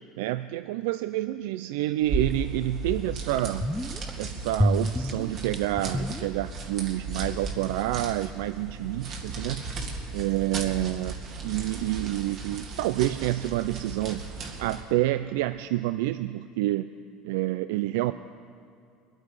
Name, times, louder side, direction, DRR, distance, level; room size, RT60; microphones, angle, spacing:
voice 1, 0.2-3.7 4.2-9.6 10.1-11.2 11.4-14.3 14.6-16.9 17.2-18.1, right 15 dB, 80° right, 12 dB, 0.3 m, -28 dB
sound 1, 2.0-14.9, right 3 dB, 50° right, 2.0 m, -36 dB
sound 2, 2.3-2.4 2.9-3.0 3.3-4.1 4.5-6.8 7.0-7.1, equal, ahead, 0.4 m, -28 dB
23.0 x 8.6 x 4.9 m, 2.5 s
supercardioid pair, 120°, 0 cm